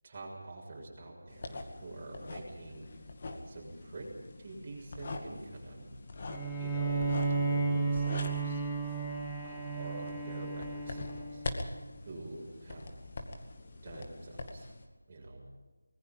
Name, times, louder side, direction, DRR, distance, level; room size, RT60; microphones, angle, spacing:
voice 1, 0.0-2.9 3.5-4.1 4.4-5.9 6.6-8.6 9.4-11.4 12.0-13.0 13.8-14.7 15.1-15.4, right 2 dB, 25° right, -3 dB, 7.0 m, -46 dB
sound 1, 1.3-14.9, left 2 dB, 35° left, 2.1 m, -44 dB
Bowed string instrument, 6.3-11.8, right 4 dB, 5° left, 2.1 m, -33 dB
24.5 x 20.5 x 5.5 m, 1.3 s
figure-of-eight pair, 170°, 0 cm